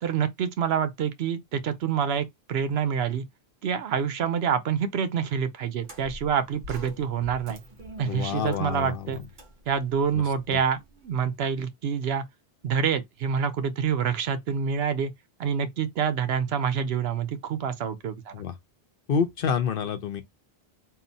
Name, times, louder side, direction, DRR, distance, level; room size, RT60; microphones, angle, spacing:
voice 1, 0.0-3.2 3.6-7.6 8.0-9.2 9.7-12.2 12.6-15.1 15.4-18.4, right 7 dB, 75° right, 0.9 m, -27 dB
sound 1, 5.8-11.0, right 1 dB, 50° right, 1.1 m, -45 dB
voice 2, 8.1-9.2 10.1-10.2 10.5-10.6 18.3-18.5 19.1-20.2, left 6 dB, 65° left, 0.8 m, -28 dB
3.8 x 2.2 x 4.0 m
omnidirectional pair, 1.1 m